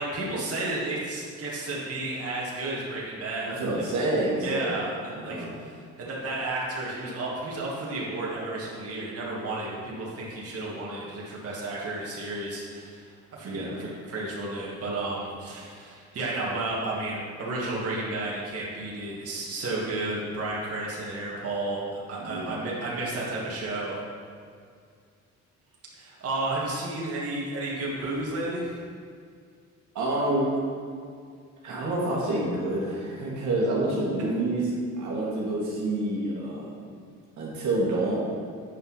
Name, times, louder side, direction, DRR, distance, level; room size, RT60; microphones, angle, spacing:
voice 1, 0.0-3.8 4.4-24.0 26.0-28.8, right 2 dB, 50° right, -5 dB, 2.1 m, -32 dB
voice 2, 3.5-4.8 5.1-5.5 13.4-13.7 22.2-22.6 29.9-30.5 31.6-34.7 35.0-36.7 37.4-38.2, right 2 dB, 75° right, -5 dB, 2.2 m, -28 dB
8.3 x 5.7 x 5.6 m, 2.1 s
cardioid pair, 90°, 30 cm